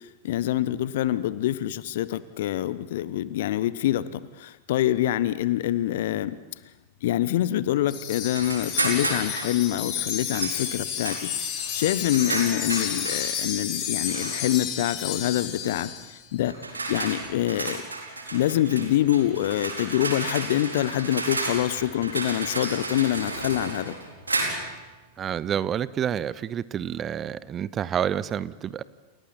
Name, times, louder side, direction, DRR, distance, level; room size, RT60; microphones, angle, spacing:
voice 1, 0.2-6.4 7.0-11.3 11.7-16.6 16.9-17.8 18.3-24.0, left 13 dB, 55° left, 17 dB, 1.0 m, -25 dB
Wind chime, 7.9-16.1, left 8 dB, 35° left, 6.0 m, -31 dB
sound 1, 8.3-9.6 10.3-10.6 11.0-13.2 14.1-14.6 15.6-15.8 16.5-24.8, right 2 dB, 80° right, 4.2 m, -32 dB
voice 2, 25.2-28.8, right 9 dB, 25° right, 19 dB, 0.7 m, -28 dB
30.0 x 29.5 x 4.4 m, 1.1 s
figure-of-eight pair, 90°, 0 cm